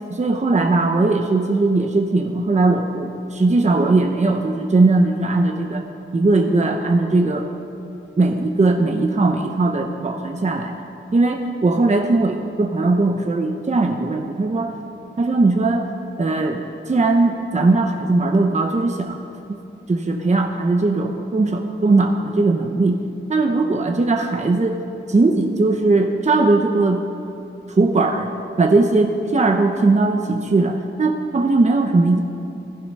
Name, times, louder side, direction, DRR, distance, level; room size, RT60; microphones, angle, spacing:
voice 1, 0.1-5.8 6.1-7.5 8.2-10.8 11.1-14.8 15.2-15.9 16.2-19.2 19.5-19.6 19.9-23.0 23.3-24.8 25.1-27.0 27.7-28.3 28.6-32.2, right 3 dB, 35° right, 3 dB, 0.9 m, -19 dB
14.5 x 14.5 x 5.5 m, 2.7 s
wide cardioid pair, 100°, 20 cm